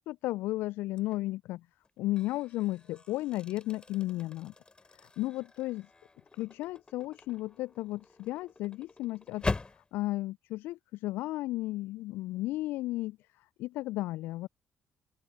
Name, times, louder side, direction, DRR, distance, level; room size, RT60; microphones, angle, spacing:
voice 1, 0.0-1.7 2.0-4.5 4.9-5.9 6.3-14.5, left 17 dB, 65° left, 0.5 m, -34 dB
sound 1, 0.9-1.3 1.8-9.9, left 3 dB, 25° left, 3.4 m, -42 dB
open air
figure-of-eight pair, 45°, 4 cm